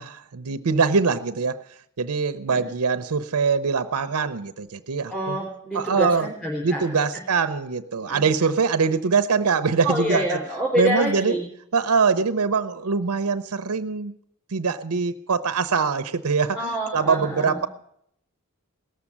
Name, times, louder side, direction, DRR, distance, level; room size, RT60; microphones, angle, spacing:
voice 1, 0.0-1.6 2.0-5.4 5.7-6.3 6.6-10.4 10.8-11.4 11.7-14.2 14.5-17.7, right 5 dB, 75° right, 12 dB, 0.6 m, -23 dB
voice 2, 5.1-6.8 8.1-8.3 9.8-11.5 16.5-17.7, equal, 5° left, -4 dB, 3.8 m, -27 dB
18.0 x 7.2 x 9.9 m, 0.73 s
head